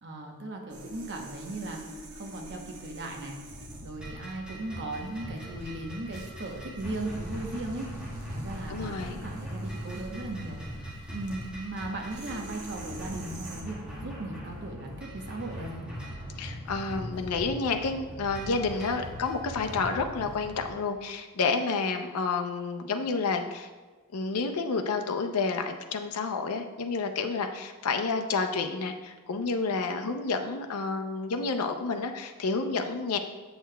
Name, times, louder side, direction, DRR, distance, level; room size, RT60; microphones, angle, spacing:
voice 1, 0.0-3.4 3.8-7.9 8.3-15.8, right 2 dB, 55° right, 1 dB, 0.9 m, -37 dB
sound 1, 0.7-13.6, right 1 dB, 85° right, 1.0 m, -44 dB
sound 2, 3.5-20.7, equal, 5° right, 1.5 m, -41 dB
voice 2, 8.7-9.2 16.4-23.7 24.1-33.2, left 4 dB, 90° left, 5 dB, 0.5 m, -30 dB
7.8 x 6.5 x 2.2 m, 1.3 s
head